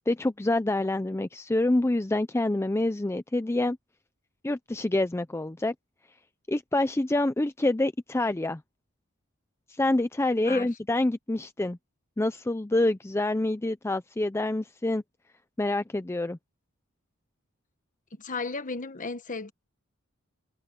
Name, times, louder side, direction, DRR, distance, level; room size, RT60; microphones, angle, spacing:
voice 1, 0.1-3.8 4.4-5.7 6.5-8.6 9.7-11.8 12.2-15.0 15.6-16.4, left 2 dB, 10° left, 0.5 m, -27 dB
voice 2, 18.1-19.5, left 3 dB, 40° left, 1.3 m, -34 dB
head